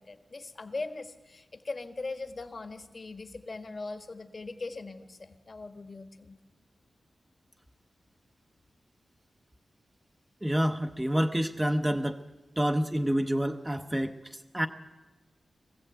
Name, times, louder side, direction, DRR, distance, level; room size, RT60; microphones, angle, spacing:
voice 1, 0.1-6.4, left 3 dB, 35° left, 7 dB, 1.3 m, -40 dB
voice 2, 10.4-12.2 12.6-14.7, equal, 10° right, 6 dB, 0.7 m, -28 dB
22.5 x 15.5 x 8.0 m, 1.1 s
wide cardioid pair, 160°, 0 cm